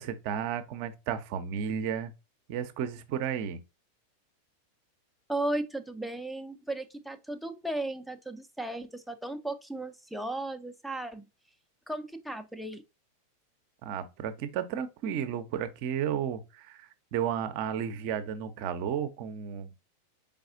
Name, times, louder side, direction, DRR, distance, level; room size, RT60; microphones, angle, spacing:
voice 1, 0.0-2.1 2.5-3.6 13.8-19.7, right 8 dB, 45° right, 0.6 m, -33 dB
voice 2, 5.3-11.3 11.9-12.8, right 1 dB, ahead, 0.5 m, -35 dB
4.7 x 3.5 x 2.5 m
figure-of-eight pair, 90°, 0 cm